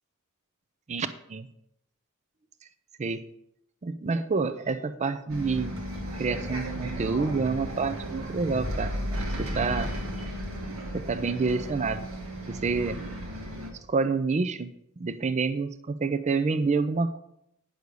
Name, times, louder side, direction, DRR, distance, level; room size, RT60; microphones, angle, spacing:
voice 1, 0.9-1.5 3.0-3.2 3.8-5.8 6.2-9.9 10.9-12.1 12.5-13.0 13.9-14.7 15.0-17.2, right 4 dB, 30° right, 12 dB, 0.4 m, -28 dB
Bus, 5.3-13.7, equal, 70° right, 1.8 m, -34 dB
9.4 x 6.5 x 5.3 m, 0.77 s
head